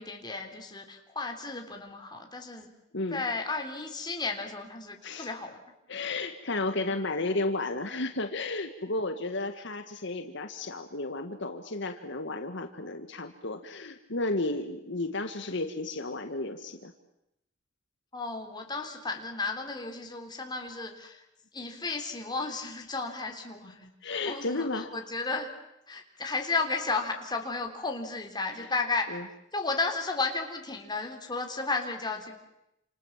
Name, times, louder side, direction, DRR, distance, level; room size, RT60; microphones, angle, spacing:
voice 1, 0.0-2.7 3.1-5.6 6.9-7.1 18.1-21.2 21.5-25.5 25.9-29.2 29.5-32.3, left 3 dB, 20° left, 3 dB, 3.5 m, -33 dB
voice 2, 5.9-16.9 24.0-24.9 28.6-28.7 29.1-29.2, left 2 dB, 65° left, 7 dB, 1.8 m, -33 dB
29.0 x 27.5 x 7.4 m, 0.84 s
head